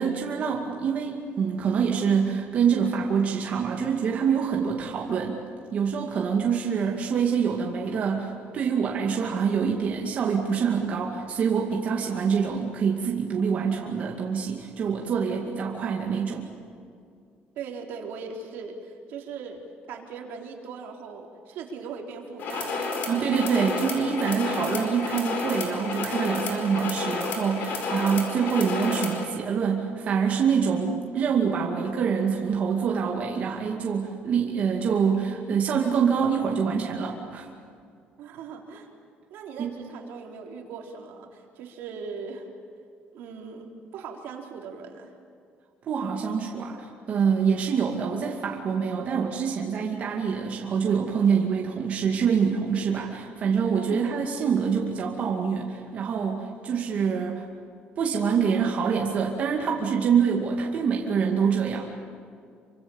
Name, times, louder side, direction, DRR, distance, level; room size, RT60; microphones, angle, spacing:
voice 1, 0.0-5.4 5.7-16.5 23.1-37.5 39.6-39.8 45.8-57.4 58.0-61.8, right 6 dB, 40° right, -1 dB, 2.3 m, -25 dB
voice 2, 17.6-19.6 19.9-23.0 38.2-38.9 39.3-42.5 43.1-45.1 53.9-54.1, right 5 dB, 70° right, 1 dB, 3.8 m, -39 dB
sound 1, 22.4-29.3, left 3 dB, 55° left, 4.7 m, -31 dB
28.5 x 25.0 x 7.2 m, 2.3 s
cardioid pair, 175°, 4 cm